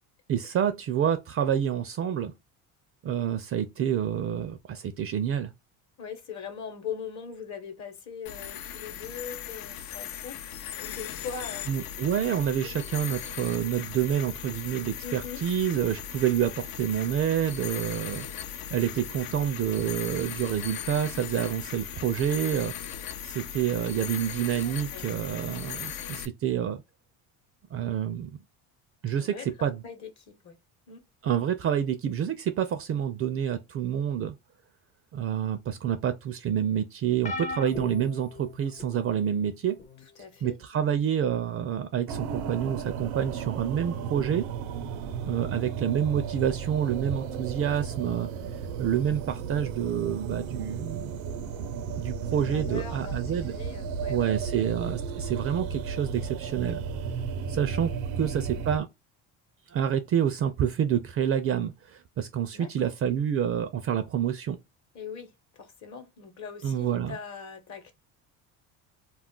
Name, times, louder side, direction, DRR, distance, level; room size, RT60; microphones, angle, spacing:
voice 1, 0.3-2.3 3.0-5.5 11.7-26.8 27.7-28.3 29.0-29.8 31.2-34.4 35.1-39.8 40.4-44.5 45.3-48.3 48.8-51.1 52.0-53.5 54.1-56.8 57.5-57.9 58.2-58.9 59.7-64.6 66.6-67.2, right 9 dB, 40° right, 0.4 m, -28 dB
voice 2, 6.0-12.3 12.6-13.2 15.0-15.4 24.4-25.5 29.1-30.6 30.9-31.0 40.2-40.8 52.2-54.7 58.1-58.3 62.5-62.9 64.9-67.9, left 6 dB, 45° left, 0.9 m, -42 dB
sound 1, 8.3-26.3, left 9 dB, 65° left, 0.5 m, -38 dB
sound 2, 37.2-39.0 39.8-40.0 41.3-41.4, left 3 dB, 20° left, 0.5 m, -37 dB
sound 3, 42.1-58.8, right 6 dB, 80° right, 0.6 m, -34 dB
2.4 x 2.1 x 3.6 m
supercardioid pair, 100°, 38 cm